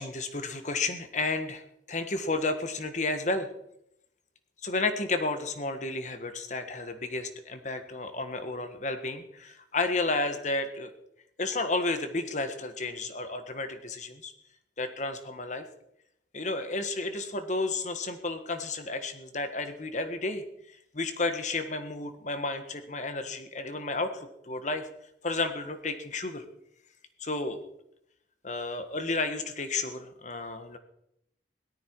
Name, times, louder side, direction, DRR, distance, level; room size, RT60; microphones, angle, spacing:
voice 1, 0.0-3.5 4.6-10.9 11.4-14.3 14.8-15.6 16.3-20.4 20.9-24.9 25.2-26.4 27.2-27.6 28.4-30.8, left 3 dB, 40° left, 8 dB, 1.5 m, -32 dB
17.5 x 13.0 x 4.7 m, 0.78 s
head